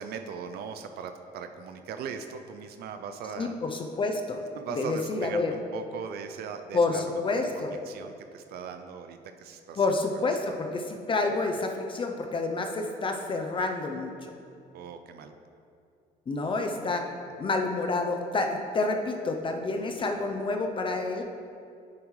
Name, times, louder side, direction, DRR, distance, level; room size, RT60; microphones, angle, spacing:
voice 1, 0.0-3.5 4.5-7.2 7.5-9.9 10.1-10.6 14.7-15.3, right 6 dB, 70° right, 7 dB, 0.5 m, -39 dB
voice 2, 3.4-4.4 4.7-5.5 6.7-7.7 9.8-14.1 16.3-21.2, left 3 dB, 30° left, 4 dB, 0.6 m, -29 dB
8.7 x 7.0 x 3.2 m, 2.4 s
cardioid pair, 110°, 17 cm